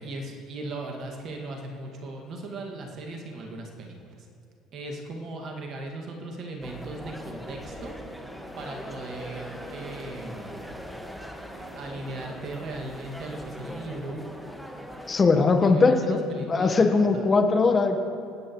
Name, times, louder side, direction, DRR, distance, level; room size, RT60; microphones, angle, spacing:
voice 1, 0.0-4.3 4.7-7.9 8.6-10.6 11.6-14.2 15.3-17.2, right 2 dB, 50° right, 1 dB, 1.9 m, -38 dB
sound 1, 6.6-15.2, equal, 5° right, 1.5 m, -40 dB
voice 2, 15.1-16.2 16.5-18.0, left 4 dB, 30° left, 6 dB, 1.1 m, -20 dB
26.5 x 9.1 x 3.1 m, 2.4 s
hypercardioid pair, 65°, 0 cm